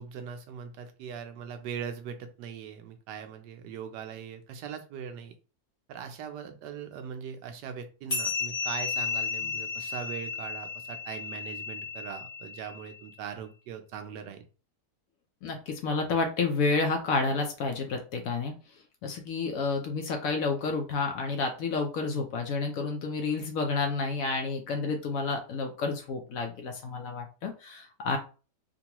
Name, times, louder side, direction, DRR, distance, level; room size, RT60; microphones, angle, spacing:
voice 1, 0.0-5.3 5.9-14.4, right 7 dB, 85° right, 7 dB, 1.3 m, -40 dB
sound 1, 8.1-13.0, left 5 dB, 30° left, 0.8 m, -34 dB
voice 2, 15.4-18.5 19.0-28.2, left 4 dB, 65° left, 4 dB, 0.9 m, -30 dB
3.7 x 2.2 x 2.9 m, 0.35 s
omnidirectional pair, 1.8 m